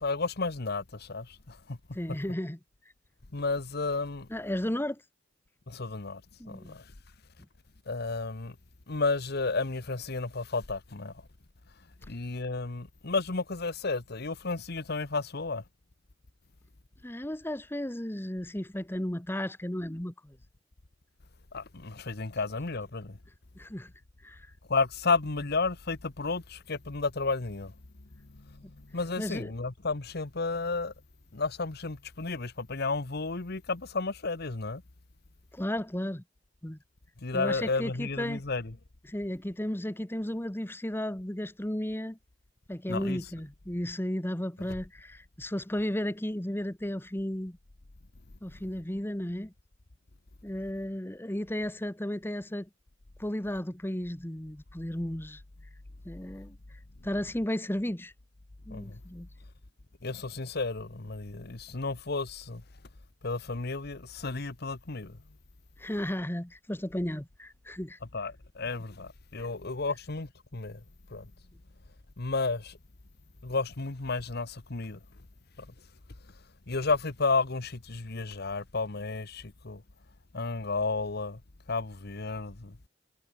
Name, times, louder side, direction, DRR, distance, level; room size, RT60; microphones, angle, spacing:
voice 1, 0.0-1.8 2.1-2.2 3.3-4.3 5.7-6.2 6.5-6.9 7.9-8.5 8.9-11.1 12.1-15.6 21.5-23.2 24.7-27.7 28.3-30.9 31.3-34.8 37.2-38.7 42.9-43.2 58.7-59.0 60.0-62.6 63.2-65.2 68.1-70.8 71.1-71.3 72.2-72.8 73.4-75.0 75.6-75.7 76.7-79.8 80.3-81.4 81.7-82.8, left 3 dB, 60° left, 1.2 m, -32 dB
voice 2, 1.9-2.6 4.3-5.0 6.4-6.7 17.0-20.4 23.6-23.9 24.2-24.4 29.2-29.5 35.5-36.2 36.6-36.8 37.3-38.4 39.1-42.2 42.7-47.6 48.4-49.5 50.4-52.7 53.2-55.4 56.0-56.6 57.0-58.1 58.7-59.3 65.8-68.0 69.4-69.5, left 1 dB, 10° left, 1.3 m, -34 dB
head